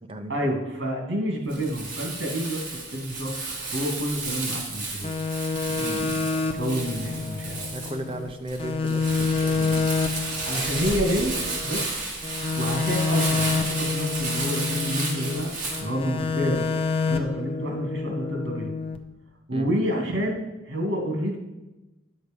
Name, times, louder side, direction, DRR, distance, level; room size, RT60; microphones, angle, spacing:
voice 1, 0.3-2.6 2.9-3.3 3.7-5.1 6.5-7.6 10.5-11.3 11.6-11.9 12.6-15.5 15.8-16.7 17.1-18.7 19.5-21.4, equal, 75° right, 1 dB, 2.4 m, -28 dB
Crumpling crinkling, 1.5-15.8, right 3 dB, 45° right, 2.4 m, -32 dB
sound 1, 5.0-8.3 8.6-11.8 12.2-15.4 15.7-19.0, left 4 dB, 30° left, 0.7 m, -28 dB
voice 2, 5.8-6.2 7.7-9.9 19.5-19.7, right 1 dB, 30° right, 5 dB, 0.9 m, -35 dB
9.5 x 6.5 x 5.3 m, 1.0 s
head